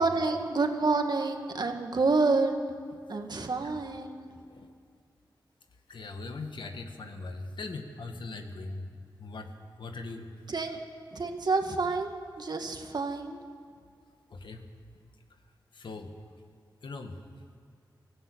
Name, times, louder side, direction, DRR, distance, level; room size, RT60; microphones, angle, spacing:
voice 1, 0.0-2.6 3.1-4.3 10.5-10.8 11.1-13.4, right 3 dB, 60° right, 5 dB, 2.1 m, -28 dB
voice 2, 5.9-8.8 9.2-9.5 9.8-10.3 14.3-14.6 15.7-16.1 16.8-17.1, left 3 dB, 80° left, 5 dB, 1.8 m, -40 dB
21.5 x 14.5 x 8.9 m, 2.2 s
cardioid pair, 60°, 8 cm